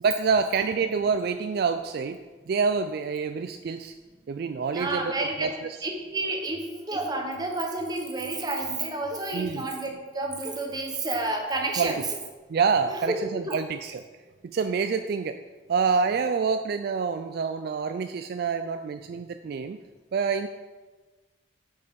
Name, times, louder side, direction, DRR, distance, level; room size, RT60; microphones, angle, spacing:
voice 1, 0.0-2.2 2.5-3.9 4.3-5.8 9.3-9.7 11.8-11.9 12.5-14.0 14.4-15.4 15.7-19.8 20.1-20.5, right 5 dB, 55° right, 8 dB, 0.3 m, -27 dB
voice 2, 4.7-5.5 5.8-12.1 12.9-13.6, right 2 dB, 20° right, 2 dB, 1.0 m, -30 dB
8.1 x 5.4 x 5.2 m, 1.3 s
head